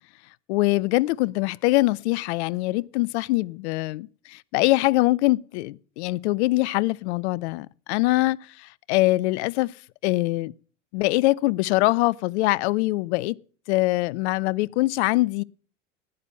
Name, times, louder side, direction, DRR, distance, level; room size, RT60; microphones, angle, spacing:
voice 1, 0.5-9.7 10.0-10.5 10.9-13.3 13.7-15.4, left 20 dB, 60° left, 0.5 m, -23 dB
11.5 x 9.9 x 5.5 m
hypercardioid pair, 80°, 38 cm